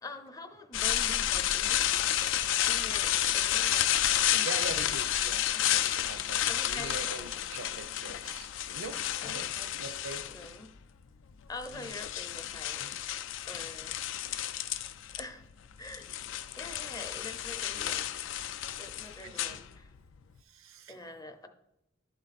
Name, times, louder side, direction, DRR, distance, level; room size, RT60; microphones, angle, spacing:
voice 1, 0.0-3.9 4.3-4.9 5.5-5.7 6.5-7.1 9.2-9.8 10.3-10.7 11.5-14.1 15.2-15.5 15.8-16.1 16.6-18.1 18.8-19.9 20.9-21.5, left 2 dB, 20° left, 7 dB, 0.6 m, -45 dB
sound 1, 0.7-10.6 11.4-15.2 15.5-20.1, left 11 dB, 70° left, 0.4 m, -31 dB
voice 2, 4.4-8.5 8.7-9.5 9.8-10.2 11.7-11.9 12.8-12.9 17.7-17.9 19.2-19.6 20.5-20.9, right 4 dB, 90° right, 11 dB, 0.6 m, -43 dB
11.5 x 3.9 x 4.1 m, 0.87 s
head